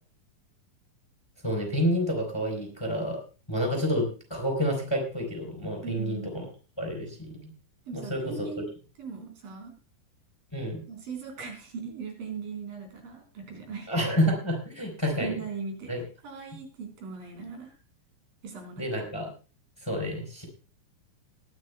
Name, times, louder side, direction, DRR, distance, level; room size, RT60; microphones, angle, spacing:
voice 1, 1.4-3.2 3.5-6.4 6.8-7.3 7.9-8.5 10.5-10.8 13.9-15.3 15.9-16.0 18.8-19.3 19.8-20.4, equal, 5° left, 3 dB, 3.3 m, -29 dB
voice 2, 5.8-6.3 7.9-8.7 9.0-9.7 10.9-13.9 15.2-15.9 16.2-17.7 18.4-18.9, right 5 dB, 80° right, 3 dB, 5.5 m, -39 dB
20.5 x 12.5 x 2.2 m, 0.35 s
omnidirectional pair, 4.0 m